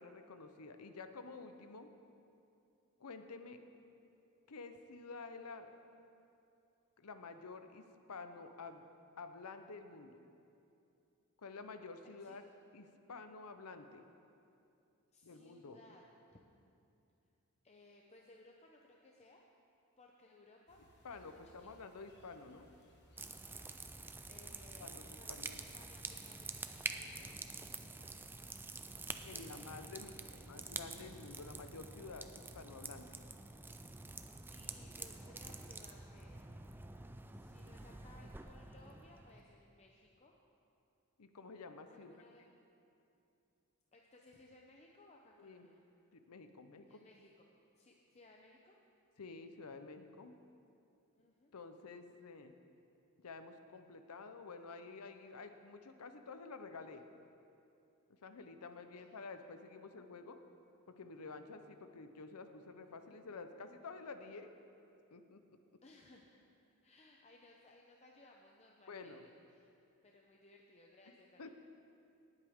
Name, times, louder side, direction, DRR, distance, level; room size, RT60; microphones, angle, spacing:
voice 1, 0.0-1.9 3.0-3.6 4.5-5.7 7.0-8.8 9.2-10.2 11.4-12.4 12.7-14.0 15.2-15.8 21.0-22.7 24.8-25.0 25.3-25.6 29.2-32.3 32.5-33.2 41.2-42.1 45.4-45.7 46.1-47.0 49.2-50.4 51.5-52.5 53.2-57.1 58.2-60.4 60.9-64.5 65.1-65.6 68.9-69.2 71.4-71.5, left 4 dB, 85° left, 8 dB, 0.7 m, -50 dB
voice 2, 15.1-16.0 16.3-16.4 17.6-19.4 20.0-20.8 21.1-21.7 24.3-25.5 25.7-28.1 29.3-29.4 29.8-30.4 34.5-36.4 37.3-40.3 41.9-42.4 43.9-45.8 46.9-47.5 47.8-48.8 51.1-51.5 58.9-59.0 65.8-66.4 66.8-69.7 70.0-71.5, left 2 dB, 30° left, 0 dB, 0.7 m, -62 dB
sound 1, 20.7-25.8, equal, 50° left, 1.4 m, -65 dB
sound 2, 23.2-39.4, right 3 dB, 10° right, 0.4 m, -48 dB
18.5 x 8.1 x 3.6 m, 2.6 s
head